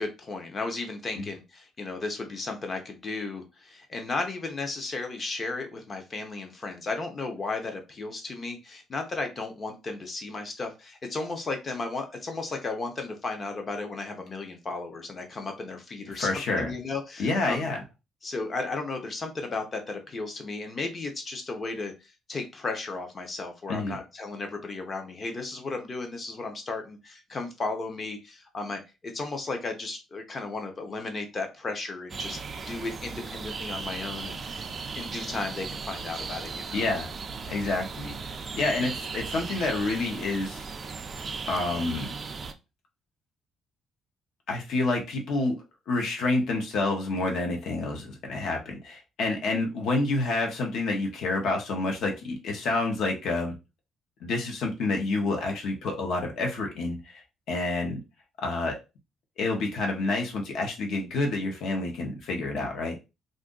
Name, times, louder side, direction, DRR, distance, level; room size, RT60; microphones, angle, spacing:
voice 1, 0.0-17.6 18.2-21.9 22.3-34.7 34.9-36.9, left 3 dB, 25° left, 5 dB, 0.7 m, -34 dB
voice 2, 16.2-16.7 17.2-17.8 23.7-24.0 36.7-37.1 37.5-40.6 41.5-42.1 44.5-45.6 45.9-53.5 54.2-57.2 57.5-58.0 58.4-58.8 59.4-62.9, left 2 dB, 60° left, 2 dB, 1.0 m, -28 dB
sound 1, 32.1-42.5, right 4 dB, 25° right, 0.3 m, -37 dB
2.6 x 2.6 x 3.7 m, 0.27 s
cardioid pair, 170°, 0 cm